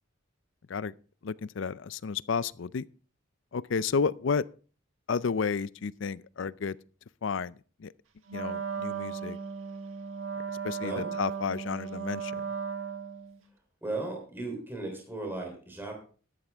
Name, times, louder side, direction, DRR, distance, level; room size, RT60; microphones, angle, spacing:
voice 1, 1.2-2.9 3.5-4.5 5.1-6.8 7.2-7.9 8.3-9.4 10.6-12.4, left 5 dB, 65° left, 0.5 m, -31 dB
Wind instrument woodwind instrument, 8.3-13.4, right 6 dB, 85° right, 1.3 m, -36 dB
voice 2, 10.8-11.1 13.8-15.9, right 2 dB, 10° right, 3.4 m, -36 dB
13.0 x 11.5 x 3.5 m
head